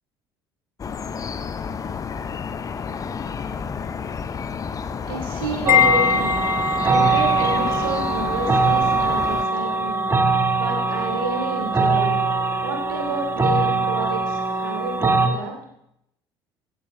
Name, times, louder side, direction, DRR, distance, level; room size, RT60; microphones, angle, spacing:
sound 1, 0.8-9.5, left 6 dB, 30° left, 0.7 m, -30 dB
voice 1, 5.1-6.4 6.8-10.0 10.6-12.2 12.6-15.5, right 3 dB, 70° right, 1 dB, 2.9 m, -30 dB
sound 2, 5.6-15.3, right 3 dB, 20° right, 1.5 m, -22 dB
Wind chime, 5.7-7.1, left 11 dB, 60° left, 0.8 m, -20 dB
15.5 x 15.0 x 2.7 m, 0.78 s
figure-of-eight pair, 60°, 12 cm